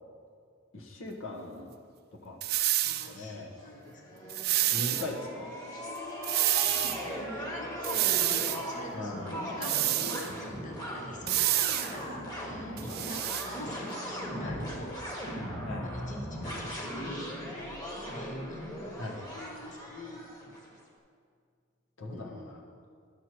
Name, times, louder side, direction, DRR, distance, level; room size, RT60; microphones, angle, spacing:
voice 1, 0.7-1.8 2.2-2.4 3.0-3.5 4.7-5.5 8.9-9.3 12.7-13.0 14.4-14.6 15.7-15.9 19.0-19.2 22.0-22.6, left 2 dB, 70° left, 1 dB, 1.0 m, -39 dB
sound 1, 2.4-3.1 4.3-5.1 6.2-7.0 7.8-8.6 9.6-10.3 11.3-11.9 12.8-13.5, right 15 dB, 50° right, 0.3 m, -28 dB
voice 2, 2.8-5.1 6.6-15.0 15.8-20.3 22.1-22.6, left 1 dB, 40° left, 1 dB, 1.0 m, -46 dB
sound 2, 3.6-20.7, equal, 20° left, 1.4 m, -38 dB
11.0 x 6.2 x 4.4 m, 2.2 s
head